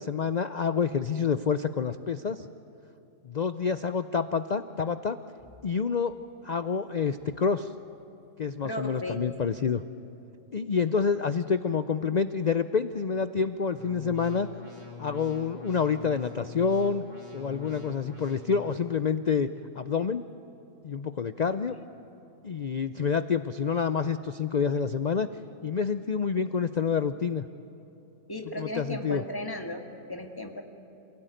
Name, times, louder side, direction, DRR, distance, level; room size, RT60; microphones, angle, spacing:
voice 1, 0.0-2.5 3.2-5.2 5.6-6.1 6.4-7.7 8.4-9.8 10.5-14.5 15.0-17.0 17.3-19.5 19.8-20.2 20.8-21.7 22.4-25.3 25.6-27.5 28.6-29.2, left 6 dB, 85° left, 11 dB, 0.3 m, -28 dB
voice 2, 8.6-9.4 21.5-21.6 28.3-30.6, left 1 dB, 15° left, 3 dB, 1.8 m, -36 dB
sound 1, 13.8-18.8, left 6 dB, 55° right, 5.2 m, -44 dB
28.0 x 17.0 x 9.1 m, 3.0 s
omnidirectional pair, 1.5 m